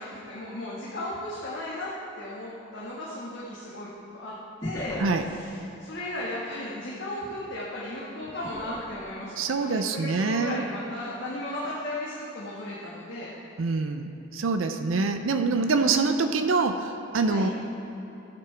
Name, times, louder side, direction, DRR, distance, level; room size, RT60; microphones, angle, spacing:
voice 1, 0.0-5.5 5.8-13.3 15.7-16.0 17.3-17.5, left 1 dB, 65° left, -7 dB, 1.6 m, -36 dB
sound 1, 4.6-5.5 8.4-9.6 10.1-10.4, equal, 15° left, 0.9 m, -37 dB
voice 2, 9.4-10.6 13.6-17.5, right 4 dB, 80° right, 7 dB, 0.5 m, -25 dB
14.5 x 9.6 x 3.4 m, 2.9 s
head